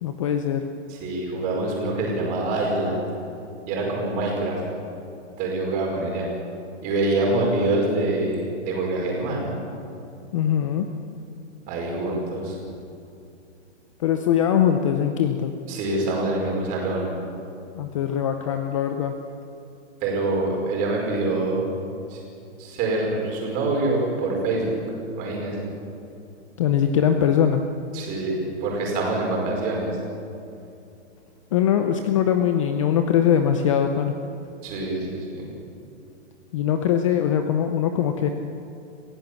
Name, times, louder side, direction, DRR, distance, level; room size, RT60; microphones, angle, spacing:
voice 1, 0.0-0.6 10.3-10.9 14.0-15.5 17.7-19.1 26.6-27.6 31.5-34.1 36.5-38.3, left 9 dB, 25° left, 7 dB, 0.7 m, -21 dB
voice 2, 0.9-3.0 3.7-4.6 5.4-6.3 6.8-9.5 11.7-12.5 15.7-17.1 20.0-21.6 22.1-22.2 22.6-24.8 25.1-25.7 27.9-29.9 34.6-35.5, right 2 dB, 25° right, -1 dB, 5.0 m, -25 dB
27.0 x 15.5 x 7.2 m, 2.7 s
hypercardioid pair, 170°, 36 cm